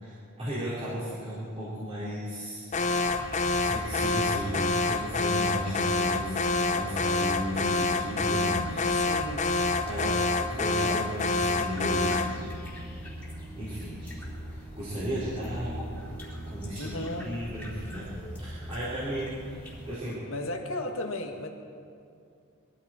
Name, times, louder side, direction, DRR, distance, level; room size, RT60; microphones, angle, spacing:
voice 1, 0.0-2.7 3.5-6.4 6.7-8.9 9.9-12.7 13.6-15.8 16.5-18.1 18.4-19.6 19.8-20.2, equal, 30° right, -10 dB, 3.6 m, -35 dB
Alarm, 2.7-12.4, left 3 dB, 35° left, 0.6 m, -27 dB
sound 1, 2.7-20.0, equal, 5° left, 3.2 m, -40 dB
voice 2, 8.9-9.7 16.8-17.3 20.2-21.5, left 2 dB, 70° left, 2 dB, 1.7 m, -35 dB
21.5 x 13.5 x 4.4 m, 2.4 s
head